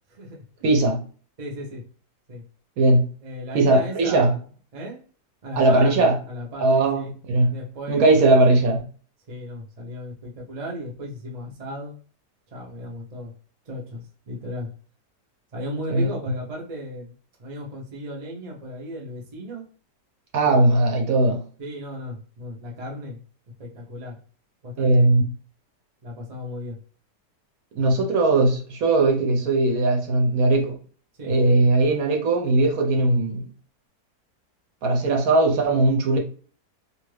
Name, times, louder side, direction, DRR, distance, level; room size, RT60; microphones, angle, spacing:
voice 1, 0.1-0.6 1.4-1.8 2.3-2.4 3.2-4.4 4.7-5.0 5.4-7.1 7.5-8.3 9.3-11.9 12.5-13.3 13.7-14.7 15.5-17.1 17.4-19.7 20.4-20.7 21.6-23.2 23.6-24.2 24.6-25.1 26.0-26.8 31.2-31.3, equal, 50° right, 0.4 m, -35 dB
voice 2, 0.6-1.0 2.8-3.1 3.5-4.3 5.6-6.2 6.6-7.5 7.9-8.8 15.9-16.1 20.3-21.4 24.8-25.2 27.7-30.8 31.2-33.4 34.8-36.2, right 2 dB, 65° right, 1.0 m, -19 dB
2.6 x 2.5 x 3.2 m
omnidirectional pair, 1.8 m